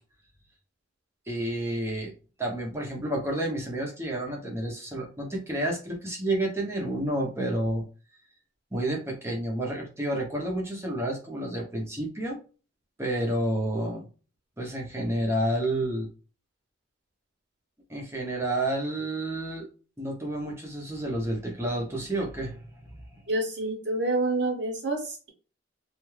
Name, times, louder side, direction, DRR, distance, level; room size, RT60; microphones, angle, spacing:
voice 1, 1.3-2.1 2.4-7.8 8.7-12.4 13.0-14.1 14.6-16.1 17.9-19.7 20.0-22.6 22.8-23.2, right 1 dB, 15° right, -1 dB, 0.7 m, -30 dB
voice 2, 23.3-25.3, right 2 dB, 60° right, 2 dB, 0.9 m, -28 dB
2.5 x 2.3 x 3.1 m, 0.36 s
head